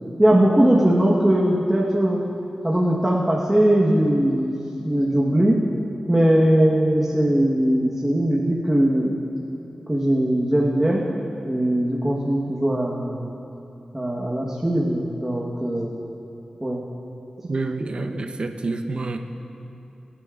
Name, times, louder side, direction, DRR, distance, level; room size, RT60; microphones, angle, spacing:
voice 1, 0.2-2.2 2.6-4.5 4.8-5.6 6.1-9.2 9.9-11.0 11.5-13.3 13.9-15.9 16.6-16.8, right 1 dB, 15° right, -5 dB, 1.3 m, -20 dB
voice 2, 17.5-19.2, right 3 dB, 55° right, 5 dB, 0.8 m, -28 dB
23.0 x 10.0 x 2.5 m, 2.9 s
wide cardioid pair, 80°, 2 cm